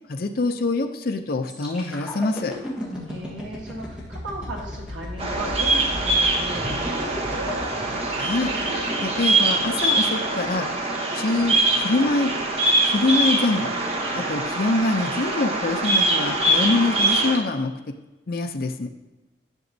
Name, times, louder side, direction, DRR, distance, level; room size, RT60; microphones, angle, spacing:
voice 1, 0.1-2.5 8.2-8.5 9.0-10.7 11.1-12.3 12.8-13.7 14.1-18.0 18.3-18.9, left 2 dB, 50° left, 5 dB, 0.5 m, -24 dB
sound 1, 1.5-11.3 11.8-12.0, left 1 dB, 5° right, 1.5 m, -36 dB
voice 2, 3.1-7.6, right 1 dB, 75° right, -2 dB, 1.7 m, -37 dB
Bird vocalization bird call bird song, 5.2-17.4, right 2 dB, 30° right, 0.9 m, -23 dB
10.5 x 6.0 x 2.7 m, 1.1 s
head